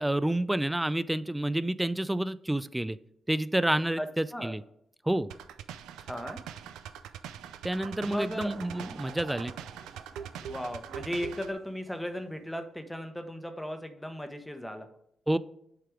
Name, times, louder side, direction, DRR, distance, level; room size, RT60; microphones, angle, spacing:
voice 1, 0.0-3.0 3.3-4.6 5.1-5.3 7.6-9.5 15.3-15.4, right 1 dB, 10° right, 15 dB, 0.3 m, -29 dB
voice 2, 4.0-4.5 6.0-6.4 8.1-8.6 10.4-14.9, equal, 5° left, 7 dB, 1.0 m, -36 dB
sound 1, 5.3-11.5, right 9 dB, 85° right, 0.4 m, -43 dB
Laughter / Crowd, 8.0-12.2, right 4 dB, 65° right, 0.9 m, -51 dB
7.7 x 3.3 x 4.8 m, 0.73 s
supercardioid pair, 55°, 0 cm